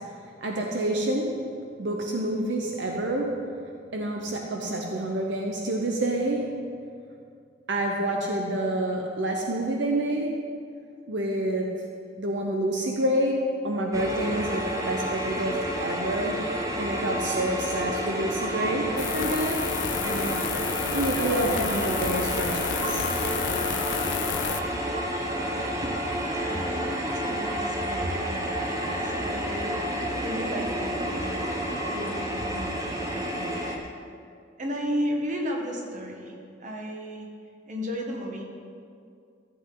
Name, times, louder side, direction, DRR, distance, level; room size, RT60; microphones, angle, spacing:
voice 1, 0.4-1.4 1.8-3.5 3.9-6.6 7.7-10.4 11.1-11.8 12.2-16.4 16.8-19.7 20.0-20.5 20.9-23.1, right 1 dB, 75° right, 0 dB, 0.9 m, -28 dB
sound 1, 13.9-33.8, equal, 20° right, 1.0 m, -30 dB
sound 2, 19.0-24.6, left 8 dB, 70° left, 0.4 m, -31 dB
voice 2, 25.8-33.6 34.6-37.3 37.7-38.4, equal, 45° right, 1 dB, 1.5 m, -34 dB
14.5 x 7.8 x 4.0 m, 2.3 s
head